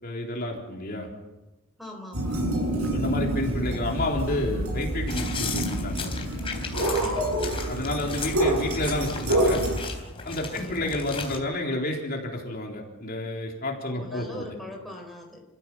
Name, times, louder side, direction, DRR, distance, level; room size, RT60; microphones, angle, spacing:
voice 1, 0.0-1.1 2.9-6.1 7.7-9.6 10.2-14.4, left 1 dB, 45° left, 0 dB, 3.7 m, -30 dB
voice 2, 1.8-2.5 6.9-7.4 10.5-10.8 13.9-15.4, left 1 dB, ahead, 2 dB, 4.4 m, -41 dB
sound 1, 2.1-9.8, right 1 dB, 85° right, 7.6 m, -27 dB
sound 2, 5.1-11.4, left 4 dB, 25° left, 3.5 m, -36 dB
29.0 x 15.5 x 7.4 m, 1.1 s
head